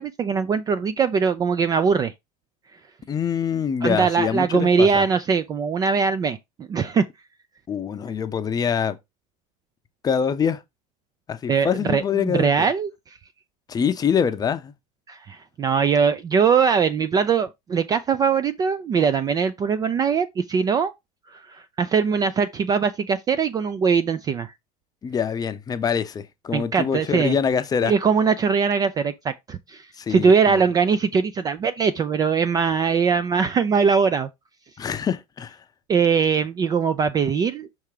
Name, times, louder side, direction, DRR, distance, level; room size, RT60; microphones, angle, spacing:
voice 1, 0.0-2.1 3.8-7.0 11.5-12.9 15.1-20.9 21.3-24.5 26.5-27.4 27.8-34.3 35.9-37.7, right 6 dB, 20° right, 0.3 m, -21 dB
voice 2, 3.1-5.0 7.7-9.0 10.0-10.6 11.3-12.7 13.7-14.7 25.0-27.9 30.0-30.6 34.8-35.6, left 7 dB, 20° left, 0.6 m, -25 dB
5.6 x 3.5 x 4.8 m
supercardioid pair, 135°, 19 cm